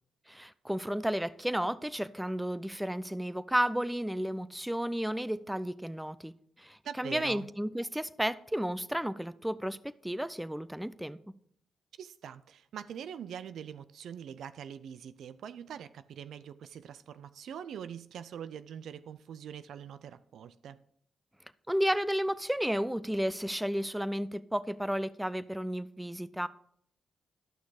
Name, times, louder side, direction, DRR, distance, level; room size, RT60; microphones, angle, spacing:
voice 1, 0.3-6.3 6.6-11.2 21.7-26.5, equal, 5° right, 0.5 m, -32 dB
voice 2, 6.8-7.5 12.0-20.8, right 8 dB, 80° right, 0.4 m, -43 dB
11.5 x 6.1 x 4.9 m
cardioid pair, 65°, 0 cm